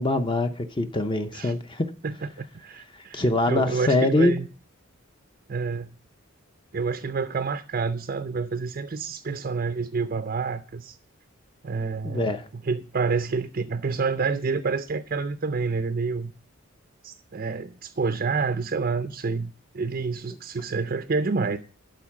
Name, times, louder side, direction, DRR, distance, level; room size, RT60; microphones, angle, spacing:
voice 1, 0.0-1.9 3.1-4.3 12.0-12.4, left 2 dB, 20° left, 0.5 m, -23 dB
voice 2, 2.0-4.5 5.5-5.9 6.7-11.0 11.6-16.3 17.0-21.6, right 4 dB, 40° right, 0.4 m, -28 dB
12.0 x 4.4 x 7.3 m
head